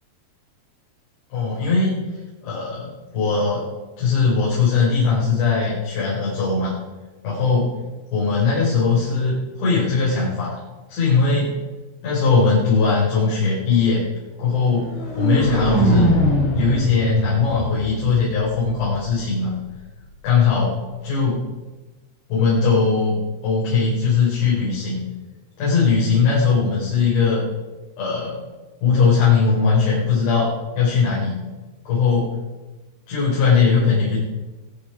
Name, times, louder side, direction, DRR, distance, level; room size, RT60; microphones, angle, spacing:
voice 1, 1.3-2.0 2.4-3.6 4.0-6.7 7.2-7.7 8.1-10.6 10.9-11.6 12.0-14.0 14.4-14.9 15.2-16.1 16.5-19.6 20.2-20.8 21.0-21.4 22.3-23.2 23.4-25.0 25.6-27.4 28.0-28.4 28.8-30.5 30.8-31.4 31.9-32.3 33.1-34.2, left 5 dB, 75° left, -7 dB, 7.7 m, -19 dB
sound 1, 14.7-18.7, equal, 40° left, 4.4 m, -22 dB
23.0 x 9.9 x 5.1 m, 1.2 s
omnidirectional pair, 5.2 m